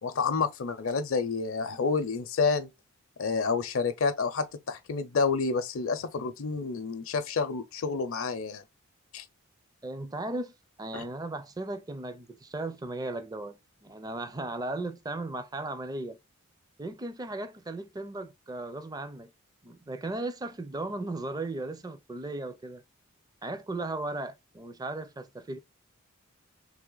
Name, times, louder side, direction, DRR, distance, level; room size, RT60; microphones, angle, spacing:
voice 1, 0.0-2.7 3.2-8.6 9.1-9.2 10.9-11.1, left 4 dB, 65° left, 0.6 m, -29 dB
voice 2, 9.8-10.5 10.8-16.2 16.8-19.3 19.6-22.8 23.4-25.6, right 2 dB, 20° right, 0.4 m, -36 dB
3.3 x 3.2 x 3.8 m
head